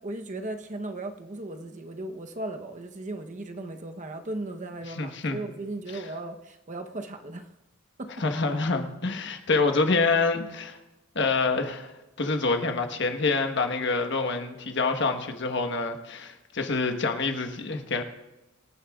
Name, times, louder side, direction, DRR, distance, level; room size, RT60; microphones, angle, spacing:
voice 1, 0.0-7.5 8.0-8.1, right 2 dB, 40° right, 5 dB, 0.8 m, -36 dB
voice 2, 5.0-5.4 5.9-6.0 8.2-10.8 11.1-11.9 12.2-18.0, left 3 dB, 60° left, 6 dB, 1.2 m, -26 dB
25.0 x 9.9 x 2.4 m, 1.0 s
head